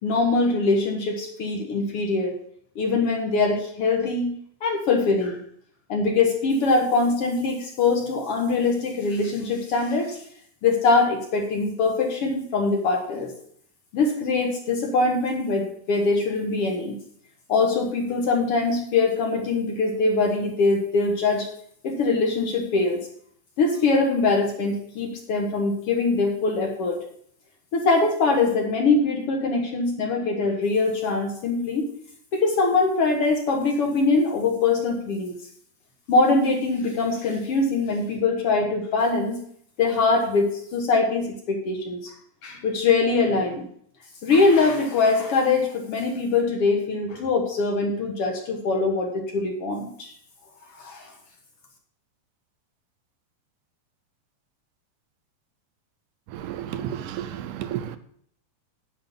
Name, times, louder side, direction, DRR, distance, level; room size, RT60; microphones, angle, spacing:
voice 1, 0.0-2.4 2.7-4.3 4.6-5.4 5.9-10.2 10.6-13.3 13.9-17.0 17.5-21.5 21.8-23.0 23.6-27.0 27.7-31.9 32.3-35.3 36.1-39.4 39.8-42.1 42.4-43.7 44.2-50.1 50.8-51.1, left 3 dB, 60° left, 1.6 m, -23 dB
voice 2, 56.3-58.0, right 10 dB, 80° right, 2.0 m, -32 dB
10.0 x 5.7 x 5.3 m
omnidirectional pair, 4.0 m